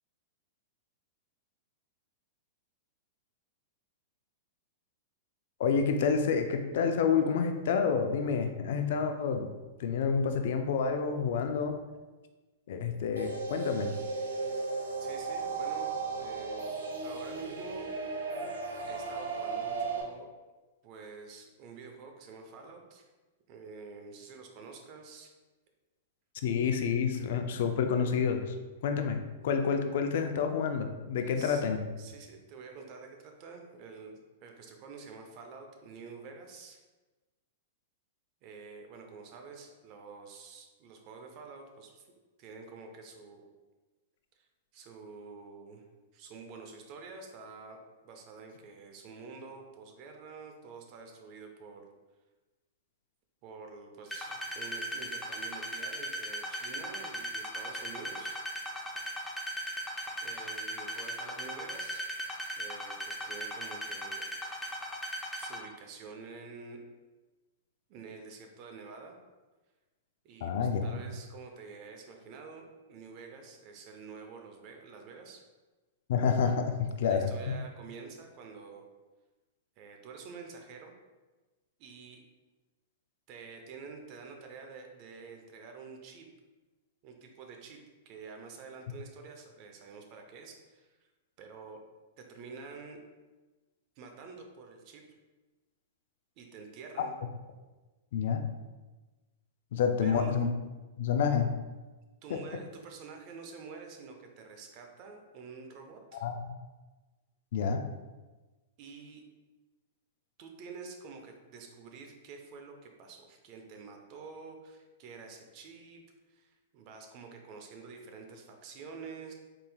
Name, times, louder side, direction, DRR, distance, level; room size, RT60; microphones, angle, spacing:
voice 1, 5.6-9.5 9.8-11.8 12.7-13.9 26.4-28.5 28.8-31.8 70.4-71.0 76.1-77.5 98.1-98.4 99.7-100.5 101.0-101.5 102.3-102.4 106.1-106.4 107.5-107.9, left 6 dB, 65° left, 6 dB, 0.4 m, -28 dB
sound 1, 13.2-20.0, right 4 dB, 85° right, 0.7 m, -35 dB
voice 2, 15.0-17.9 18.8-20.3 20.8-23.1 23.5-25.3 31.2-31.6 32.0-36.8 38.4-42.1 42.4-43.5 44.7-45.8 46.1-47.8 48.0-51.9 53.4-58.4 60.2-62.1 62.6-64.3 65.3-66.8 67.9-69.2 70.2-75.4 77.1-78.8 79.8-80.9 81.8-82.2 83.3-86.3 87.0-90.9 91.4-91.8 92.2-93.0 94.0-95.0 96.4-97.1 100.0-100.4 102.2-106.3 108.8-109.2 110.4-116.0 116.3-119.3, right 4 dB, 45° right, 3 dB, 0.7 m, -48 dB
sound 2, 54.1-65.6, right 1 dB, 5° left, 0.7 m, -37 dB
4.0 x 3.8 x 2.3 m, 1.2 s
hypercardioid pair, 115°, 0 cm